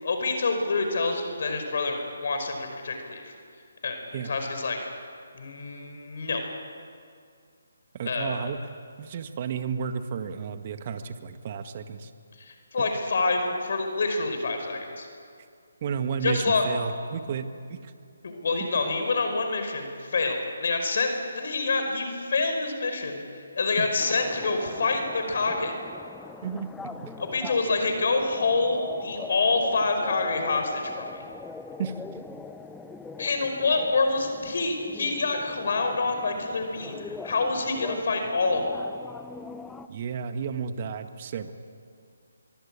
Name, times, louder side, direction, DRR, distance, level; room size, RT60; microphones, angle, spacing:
voice 1, 0.0-3.3 3.8-4.8 5.3-6.4 8.1-8.5 12.4-15.1 16.2-16.7 18.2-25.8 27.2-31.2 33.2-38.8, left 3 dB, 60° left, 5 dB, 5.0 m, -27 dB
voice 2, 7.9-8.7 9.0-12.1 15.8-17.9 23.8-23.9 26.4-27.1 31.8-31.9 39.9-41.5, right 6 dB, 40° right, 8 dB, 1.8 m, -32 dB
sound 1, 24.0-39.9, left 4 dB, 5° left, 0.8 m, -42 dB
24.5 x 23.5 x 8.8 m, 2.3 s
figure-of-eight pair, 155°, 0 cm